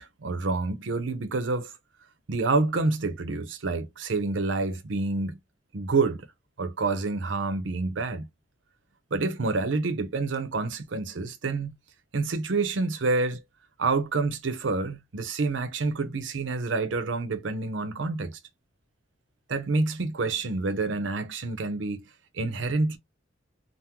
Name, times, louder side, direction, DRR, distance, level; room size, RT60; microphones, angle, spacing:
voice 1, 0.0-1.7 2.3-5.4 5.7-6.3 6.6-8.3 9.1-11.7 12.1-13.4 13.8-18.4 19.5-22.1 22.3-23.0, right 3 dB, 75° right, 0.6 m, -28 dB
3.5 x 2.0 x 2.8 m
head